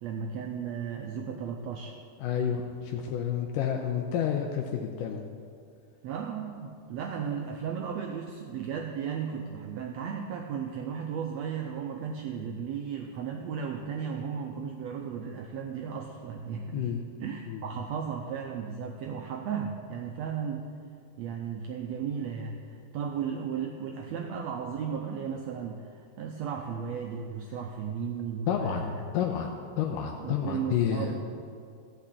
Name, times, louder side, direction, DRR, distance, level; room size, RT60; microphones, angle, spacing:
voice 1, 0.0-2.0 6.0-16.9 17.2-20.7 21.2-28.9 30.2-31.4, right 7 dB, 85° right, 2 dB, 1.5 m, -35 dB
voice 2, 2.2-5.2 16.7-17.0 17.5-17.6 28.5-28.9 29.1-31.1, left 8 dB, 85° left, 2 dB, 2.3 m, -30 dB
13.5 x 5.8 x 8.3 m, 2.3 s
omnidirectional pair, 3.8 m